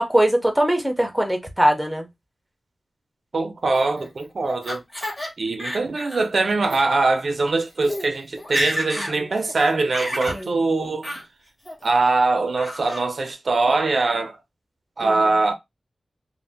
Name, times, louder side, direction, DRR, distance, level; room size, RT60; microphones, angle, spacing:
voice 1, 0.0-2.1 9.0-9.1 10.3-10.6 15.0-15.1, right 1 dB, 5° right, 0.6 m, -21 dB
voice 2, 3.3-4.8 5.4-11.1 11.8-14.4 15.0-15.5, right 3 dB, 60° right, 0.5 m, -22 dB
Laughter, 3.7-5.3 5.6-6.3 6.6-6.8 7.5-7.6 7.8-8.1 8.4-9.1 9.5-10.4 11.0-11.2 11.6-12.1 12.6-13.0, left 1 dB, 25° left, 1.2 m, -30 dB
2.5 x 2.0 x 3.3 m
wide cardioid pair, 110°, 0 cm